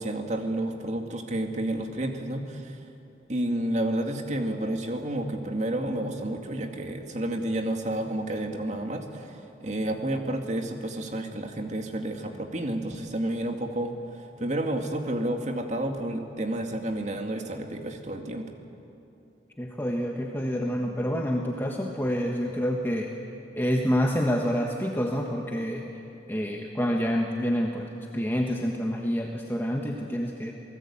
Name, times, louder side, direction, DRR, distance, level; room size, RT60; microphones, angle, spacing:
voice 1, 0.0-2.8 3.3-18.5, right 1 dB, 40° right, 4 dB, 2.2 m, -30 dB
voice 2, 19.6-23.1 23.5-25.8 26.3-30.5, equal, 15° left, 0 dB, 1.4 m, -28 dB
28.5 x 19.0 x 8.7 m, 2.8 s
head